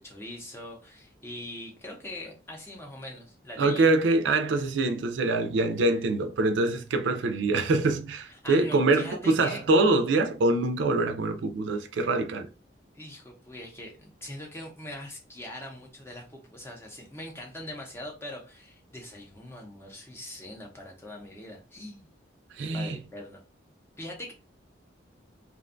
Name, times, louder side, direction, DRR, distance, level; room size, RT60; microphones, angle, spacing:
voice 1, 0.0-3.9 8.4-9.6 12.9-22.1 22.7-23.4 24.0-24.3, left 1 dB, 15° left, 0.5 m, -42 dB
voice 2, 3.6-12.5 22.5-23.0, right 2 dB, 80° right, 0.4 m, -24 dB
2.5 x 2.2 x 2.5 m
head